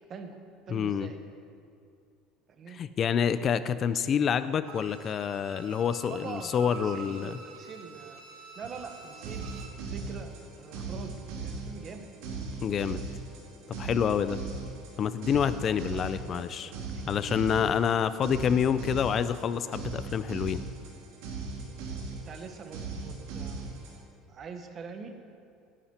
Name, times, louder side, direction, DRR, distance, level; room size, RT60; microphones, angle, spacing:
voice 1, 0.1-1.2 2.5-2.8 6.1-8.2 8.6-9.5 9.9-12.1 15.9-17.0 22.1-25.1, right 5 dB, 30° right, 6 dB, 1.1 m, -44 dB
voice 2, 0.7-1.1 2.7-7.4 12.6-13.0 13.8-14.4 15.0-16.7 17.1-20.6, left 7 dB, 30° left, 13 dB, 0.5 m, -27 dB
Bowed string instrument, 4.6-9.8 10.2-10.3, right 5 dB, 55° right, 1.5 m, -47 dB
sound 1, 8.6-24.0, right 4 dB, 85° right, 2.5 m, -39 dB
17.5 x 10.0 x 4.4 m, 2.4 s
cardioid pair, 160°, 0 cm